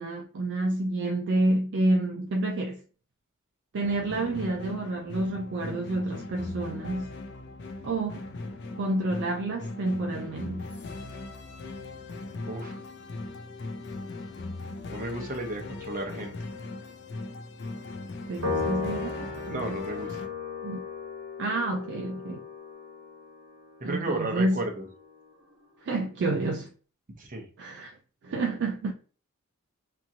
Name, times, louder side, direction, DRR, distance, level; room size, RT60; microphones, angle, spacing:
voice 1, 0.0-2.8 3.7-7.1 7.8-8.3 8.8-10.7 18.3-19.8 20.6-20.8 21.4-22.4 23.8-24.7 25.8-26.7 27.6-28.0 28.2-28.9, right 2 dB, 55° right, 0.4 m, -29 dB
sound 1, 3.8-20.3, left 2 dB, 55° left, 0.4 m, -39 dB
voice 2, 12.5-12.8 14.9-16.3 19.5-20.1 23.8-24.9 27.2-27.5, right 2 dB, 40° right, 0.8 m, -33 dB
Piano, 18.4-25.0, left 4 dB, 80° right, 1.1 m, -36 dB
2.9 x 2.4 x 2.7 m
head